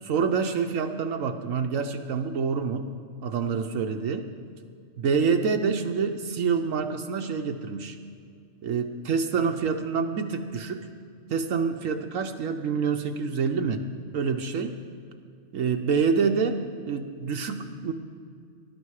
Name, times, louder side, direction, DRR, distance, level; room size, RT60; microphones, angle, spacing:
voice 1, 0.0-2.9 3.2-4.3 5.0-8.0 8.6-10.9 11.3-13.8 14.1-14.8 15.5-17.9, right 5 dB, 75° right, 5 dB, 1.2 m, -27 dB
19.0 x 12.0 x 4.8 m, 2.3 s
omnidirectional pair, 1.4 m